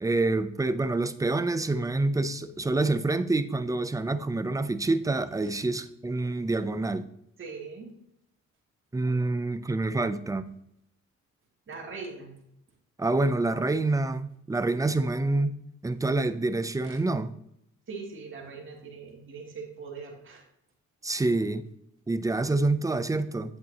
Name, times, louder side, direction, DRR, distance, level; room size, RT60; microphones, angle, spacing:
voice 1, 0.0-7.1 8.9-10.5 13.0-15.6 15.8-17.3 21.0-21.6 22.1-23.5, right 2 dB, 10° right, 12 dB, 0.5 m, -27 dB
voice 2, 7.4-7.9 11.7-12.3 17.9-20.4, right 4 dB, 40° right, -2 dB, 2.6 m, -41 dB
8.8 x 8.2 x 2.9 m, 0.76 s
cardioid pair, 90°, 30 cm